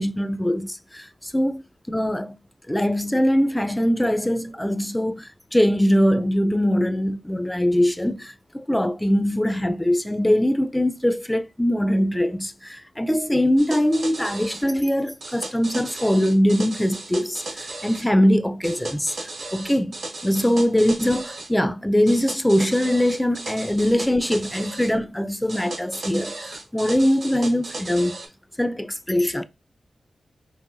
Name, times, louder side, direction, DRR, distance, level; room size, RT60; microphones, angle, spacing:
voice 1, 0.0-1.6 1.9-2.4 2.7-19.1 19.5-19.9 20.2-28.2 28.6-29.4, equal, 10° left, 0.3 m, -22 dB
sound 1, 13.6-14.6 15.2-18.1 18.6-21.5 22.1-24.9 25.5-28.3, right 2 dB, 80° right, 1.7 m, -36 dB
5.4 x 2.5 x 2.5 m
cardioid pair, 60°, 0 cm